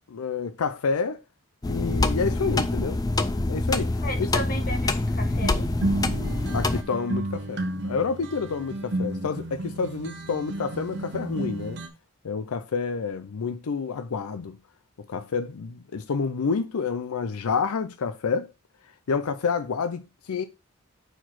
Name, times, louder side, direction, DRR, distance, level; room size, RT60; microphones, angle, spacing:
voice 1, 0.1-1.2 1.6-3.0 3.5-4.3 6.5-11.8 12.2-14.6 15.1-18.5 19.1-20.4, left 5 dB, 85° left, 0.5 m, -29 dB
sound 1, 1.6-6.8, left 2 dB, 15° left, 0.4 m, -25 dB
voice 2, 4.0-5.7, left 1 dB, 40° left, 1.2 m, -34 dB
sound 2, 5.4-11.9, right 1 dB, 50° right, 0.7 m, -32 dB
4.6 x 4.5 x 5.8 m
head